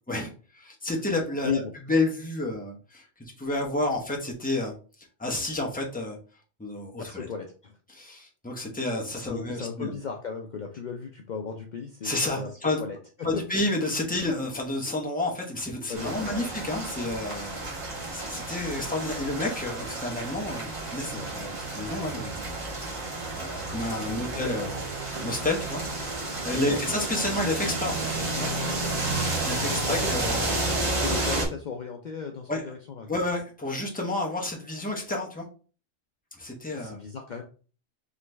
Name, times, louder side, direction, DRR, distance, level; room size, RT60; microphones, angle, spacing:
voice 1, 0.1-1.6 1.9-4.7 5.2-6.2 6.6-7.3 7.9-9.9 12.0-12.8 13.2-22.5 23.3-25.8 26.1-28.5 29.4-31.1 32.5-32.6 33.1-35.5 36.4-37.0, left 2 dB, 10° left, -1 dB, 0.6 m, -30 dB
voice 2, 7.0-7.7 9.2-13.4 15.9-16.5 21.1-21.3 24.1-24.5 26.5-26.8 30.0-30.1 31.0-33.1 36.7-37.4, left 6 dB, 85° left, 3 dB, 0.4 m, -36 dB
sound 1, 15.9-31.5, right 2 dB, 25° right, 1.2 m, -31 dB
3.8 x 3.0 x 3.2 m, 0.38 s
omnidirectional pair, 1.4 m